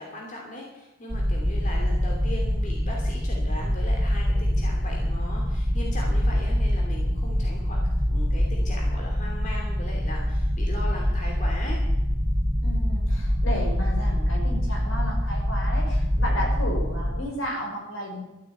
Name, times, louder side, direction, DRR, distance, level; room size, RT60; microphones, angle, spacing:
voice 1, 0.0-7.8 8.1-11.8, left 1 dB, 40° left, -1 dB, 3.0 m, -38 dB
sound 1, 1.1-17.2, equal, 15° right, 4.8 m, -25 dB
voice 2, 12.6-18.2, equal, 75° left, 0 dB, 5.5 m, -33 dB
13.5 x 8.8 x 9.2 m, 0.98 s
head